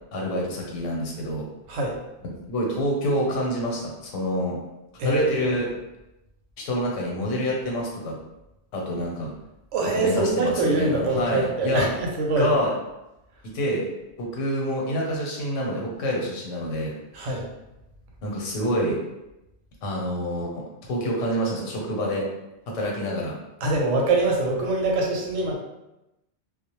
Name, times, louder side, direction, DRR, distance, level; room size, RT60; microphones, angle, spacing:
voice 1, 0.1-1.5 2.5-4.6 5.0-5.7 6.6-8.1 8.7-9.3 9.9-11.9 12.4-12.7 13.5-13.9 14.2-16.9 18.2-19.0 19.8-20.6 20.9-22.3 22.7-23.3, equal, 90° left, -2 dB, 1.0 m, -27 dB
voice 2, 5.0-5.6 9.7-12.5 17.1-17.5 23.6-25.6, right 2 dB, 85° right, -1 dB, 0.9 m, -24 dB
2.2 x 2.0 x 2.8 m, 0.93 s
omnidirectional pair, 1.2 m